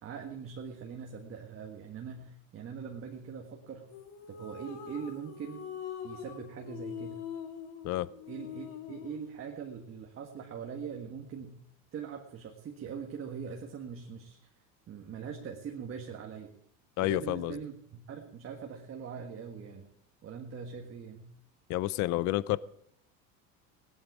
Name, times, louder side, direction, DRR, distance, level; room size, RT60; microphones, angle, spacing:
voice 1, 0.0-3.9 4.3-5.7 6.0-7.2 8.3-11.6 11.9-14.5 14.9-16.5 17.0-19.9 20.2-21.3, right 6 dB, 30° right, 1.7 m, -42 dB
sound 1, 3.9-9.3, left 8 dB, 70° left, 2.5 m, -43 dB
voice 2, 17.0-17.6 21.7-22.6, left 16 dB, 45° left, 0.5 m, -29 dB
17.5 x 12.0 x 4.9 m
cardioid pair, 140°, 41 cm